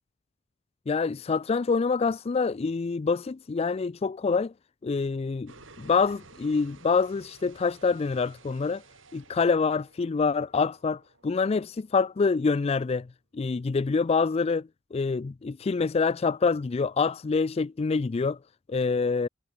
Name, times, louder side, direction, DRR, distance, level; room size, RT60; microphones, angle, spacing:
voice 1, 0.9-4.5 4.8-5.5 5.8-8.8 9.1-13.1 13.3-18.4 18.7-19.3, left 4 dB, 30° left, 0.4 m, -26 dB
sound 1, 5.5-12.3, right 3 dB, 85° right, 6.0 m, -54 dB
head